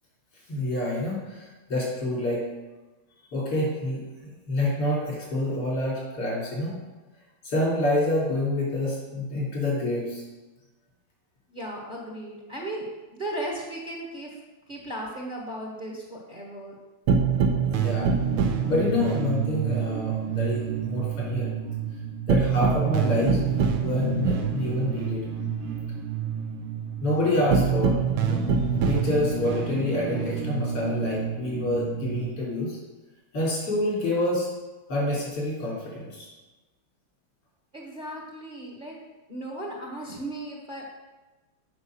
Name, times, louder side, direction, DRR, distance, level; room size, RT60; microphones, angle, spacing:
voice 1, 0.5-2.4 3.3-6.8 7.4-10.2 17.6-18.1 18.7-21.5 22.3-25.2 27.0-28.5 28.8-32.8 33.3-34.5 34.9-36.3, left 1 dB, 85° left, -6 dB, 4.5 m, -27 dB
voice 2, 11.5-12.8 13.1-14.4 14.7-16.7 37.7-38.9 39.3-40.9, right 1 dB, 25° right, -2 dB, 1.3 m, -36 dB
sound 1, 17.1-32.3, right 6 dB, 75° right, 1.6 m, -26 dB
8.2 x 5.5 x 6.4 m, 1.1 s
omnidirectional pair, 2.4 m